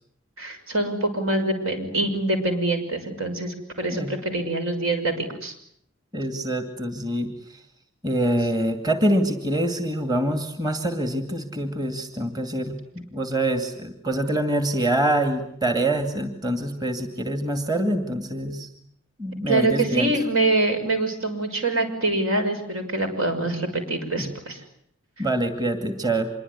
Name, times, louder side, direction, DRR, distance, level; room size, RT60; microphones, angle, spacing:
voice 1, 0.4-5.5 19.5-24.6, right 2 dB, 75° right, 7 dB, 6.2 m, -25 dB
voice 2, 6.1-7.3 8.0-18.7 19.2-20.1 24.2-24.3 25.2-26.3, right 1 dB, 20° right, 7 dB, 2.4 m, -25 dB
26.0 x 23.0 x 9.8 m, 0.69 s
head